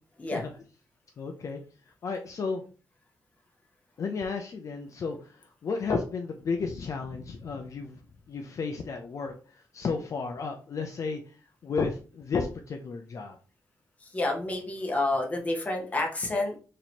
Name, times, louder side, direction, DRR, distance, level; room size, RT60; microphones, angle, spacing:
voice 1, 1.2-1.6 2.0-2.6 4.0-5.2 5.6-8.0 8.3-9.3 9.7-11.2 11.6-13.4, left 4 dB, 50° left, 4 dB, 0.4 m, -32 dB
voice 2, 14.0-16.5, left 2 dB, 20° left, 0 dB, 0.9 m, -29 dB
3.0 x 2.8 x 4.2 m, 0.37 s
wide cardioid pair, 165°, 7 cm